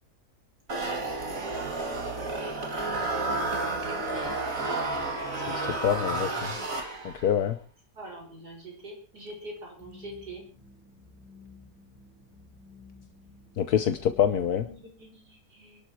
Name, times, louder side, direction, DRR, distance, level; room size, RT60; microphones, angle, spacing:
sound 1, 0.7-7.3, right 2 dB, 55° right, 3.2 m, -31 dB
voice 1, 0.7-1.9 3.7-4.4 6.1-6.4 8.0-10.4 14.6-15.8, right 1 dB, 85° right, 1 dB, 6.7 m, -44 dB
voice 2, 5.8-6.3 7.0-7.5 13.6-14.6, left 9 dB, 75° left, 10 dB, 1.5 m, -25 dB
sound 2, 9.8-14.8, left 3 dB, 5° right, 6.5 m, -53 dB
24.0 x 12.0 x 4.6 m, 0.38 s
omnidirectional pair, 1.7 m